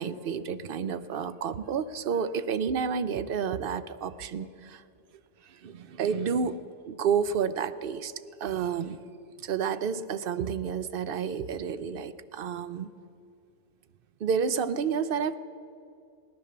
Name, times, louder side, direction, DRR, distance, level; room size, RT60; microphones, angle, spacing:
voice 1, 0.0-4.8 5.5-8.1 8.4-9.0 9.4-12.9 14.2-15.4, right 6 dB, 60° right, 13 dB, 0.7 m, -30 dB
17.5 x 10.5 x 6.9 m, 2.5 s
omnidirectional pair, 1.2 m